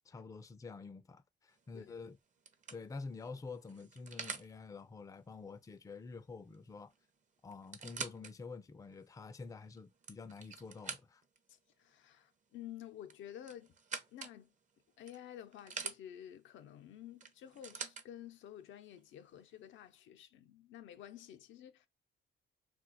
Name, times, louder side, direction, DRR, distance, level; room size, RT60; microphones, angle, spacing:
voice 1, 0.1-2.2 2.7-6.9 7.4-11.2, left 4 dB, 15° left, 0.4 m, -48 dB
sound 1, 1.6-1.9 2.5-4.5 6.5-6.7 6.9-7.0 7.5-8.3 8.9-9.0 9.8-11.4 13.0-14.4 15.1-16.0 17.2-18.1 19.0-19.1, right 5 dB, 40° right, 0.6 m, -45 dB
voice 2, 11.5-13.7 14.1-14.5 15.0-21.9, left 11 dB, 75° left, 0.5 m, -51 dB
2.3 x 2.2 x 3.9 m
cardioid pair, 90°, 20 cm